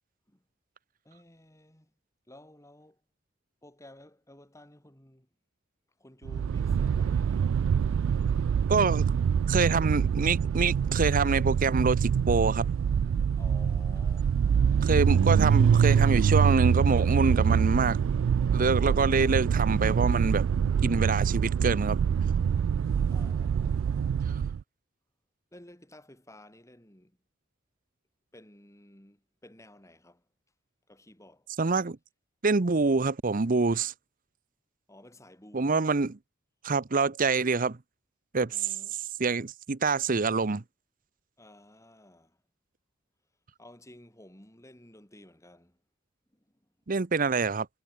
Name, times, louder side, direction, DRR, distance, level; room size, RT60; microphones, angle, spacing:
voice 1, 1.0-1.9 2.3-3.0 3.6-5.3 6.0-7.6 13.4-14.4 16.2-16.3 23.1-24.5 25.5-27.2 28.3-30.3 30.9-31.5 34.9-35.8 38.5-39.1 41.4-42.4 43.6-45.8 46.3-46.5, left 1 dB, 15° left, 4.0 m, -54 dB
sound 1, 6.3-24.6, right 7 dB, 80° right, 0.3 m, -25 dB
voice 2, 8.7-9.1 9.5-12.7 14.8-18.0 18.5-20.5 20.8-22.0 24.3-24.4 31.6-32.0 32.4-33.9 35.5-36.2 36.6-37.8 38.3-38.7 39.2-40.6 46.9-47.7, right 4 dB, 45° right, 0.8 m, -26 dB
head